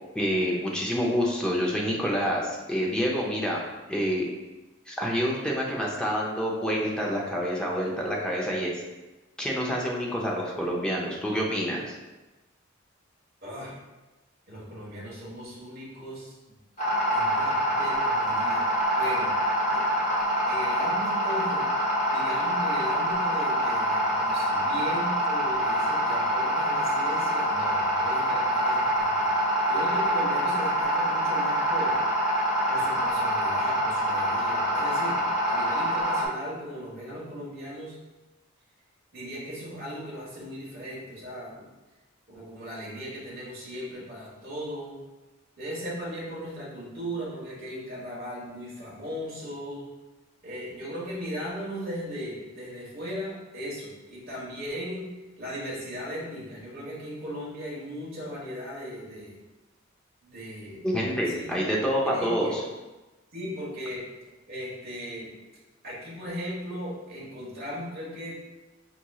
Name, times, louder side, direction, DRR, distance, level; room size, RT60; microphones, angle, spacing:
voice 1, 0.1-3.6 3.9-4.3 4.9-8.8 9.4-12.0 60.8-62.6, equal, 5° left, -3 dB, 0.6 m, -27 dB
voice 2, 13.4-13.7 14.5-16.6 17.1-18.6 18.9-19.4 19.6-19.8 20.4-21.7 22.1-29.3 29.7-32.0 32.7-38.0 39.1-41.7 42.3-45.0 45.6-49.9 50.4-59.3 60.2-60.8 61.3-61.5 62.0-62.6 63.3-64.1 64.5-65.3 65.8-68.3, equal, 50° right, -5 dB, 1.4 m, -37 dB
sound 1, 16.8-36.3, equal, 35° left, 1.1 m, -25 dB
5.0 x 3.0 x 2.3 m, 1.1 s
head